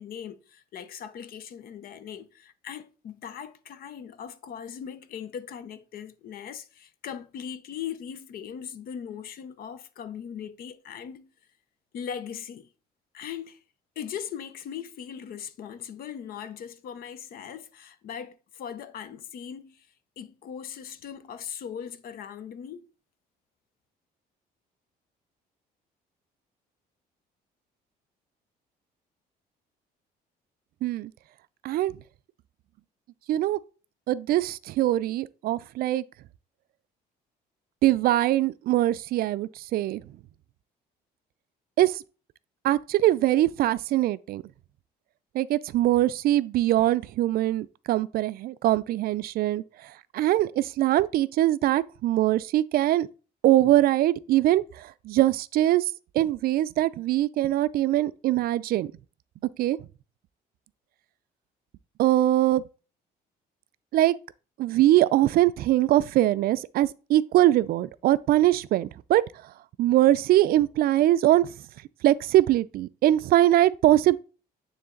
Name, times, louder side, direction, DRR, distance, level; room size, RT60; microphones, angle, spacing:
voice 1, 0.0-11.3 11.9-12.7 13.1-13.6 14.0-19.9 20.2-22.8, left 8 dB, 60° left, 0.7 m, -39 dB
voice 2, 33.3-33.6 34.1-36.0 37.8-40.0 41.8-41.9 42.6-44.4 45.3-49.6 50.1-53.1 53.4-54.6 55.1-55.8 56.1-58.9 59.6-59.8 62.0-62.6 63.9-64.2 64.6-69.2 69.8-71.5 72.0-74.2, right 14 dB, 60° right, 0.4 m, -22 dB
9.5 x 3.2 x 3.8 m
cardioid pair, 110°, 17 cm